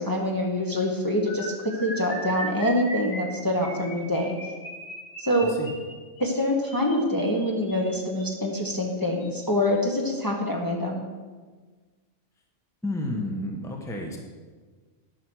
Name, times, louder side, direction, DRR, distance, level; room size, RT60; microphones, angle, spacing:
voice 1, 0.0-4.4 5.2-5.5 6.2-11.0, left 1 dB, 20° left, -1 dB, 1.0 m, -25 dB
sound 1, 1.3-8.4 9.2-9.4 9.7-9.9 10.2-10.4, right 1 dB, 85° left, 2.1 m, -39 dB
voice 2, 5.4-5.7 12.8-14.2, left 1 dB, 5° left, 1 dB, 1.0 m, -31 dB
10.0 x 6.0 x 6.2 m, 1.4 s
omnidirectional pair, 1.2 m